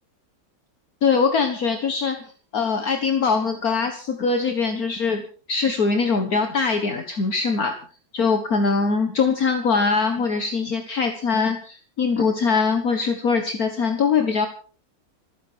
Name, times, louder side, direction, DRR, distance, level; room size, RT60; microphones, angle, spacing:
voice 1, 1.0-5.2 5.5-7.8 8.1-14.5, left 5 dB, 55° left, 6 dB, 1.9 m, -22 dB
27.0 x 10.0 x 4.6 m, 0.40 s
omnidirectional pair, 1.9 m